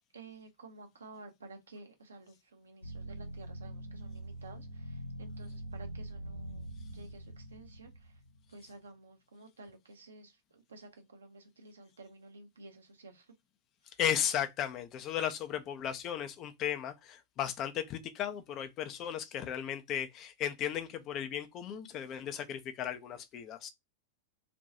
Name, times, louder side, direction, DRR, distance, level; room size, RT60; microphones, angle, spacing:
voice 1, 0.1-8.2 8.5-13.3, right 3 dB, 70° right, 0.6 m, -53 dB
sound 1, 2.8-8.6, right 1 dB, 85° left, 0.6 m, -44 dB
voice 2, 14.0-23.7, left 9 dB, 35° left, 0.5 m, -35 dB
2.5 x 2.2 x 4.0 m
figure-of-eight pair, 90°, 0 cm